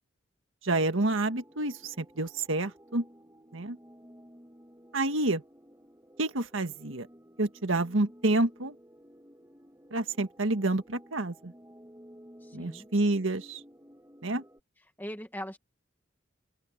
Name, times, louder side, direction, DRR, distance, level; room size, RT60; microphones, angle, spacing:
voice 1, 0.6-3.0 3.5-3.8 4.9-5.4 6.2-7.1 7.4-8.7 9.9-11.5 12.5-13.6 14.2-14.4, right 2 dB, 85° right, 1.7 m, -28 dB
sound 1, 0.9-14.6, equal, 15° right, 6.9 m, -55 dB
voice 2, 12.4-12.9 15.0-15.6, equal, 10° left, 1.7 m, -40 dB
open air
head